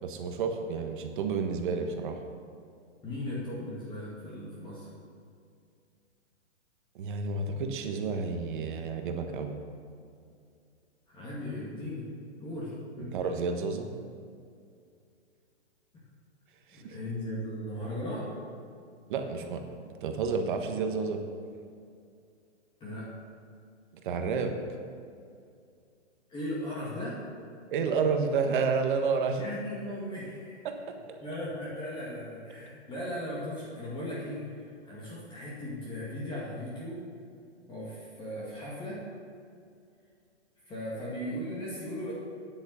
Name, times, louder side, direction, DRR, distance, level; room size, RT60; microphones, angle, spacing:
voice 1, 0.0-2.2 6.9-9.5 13.0-13.9 16.7-16.9 19.1-21.2 24.0-24.6 27.7-29.4 30.6-30.9, right 5 dB, 45° right, 5 dB, 1.4 m, -30 dB
voice 2, 3.0-4.9 11.1-12.1 12.4-13.1 16.7-18.4 22.8-23.1 26.3-27.2 29.3-30.6 31.2-37.1 37.7-39.1 40.6-42.1, left 1 dB, 15° left, -7 dB, 2.0 m, -37 dB
9.8 x 8.5 x 6.8 m, 2.4 s
hypercardioid pair, 150°, 35 cm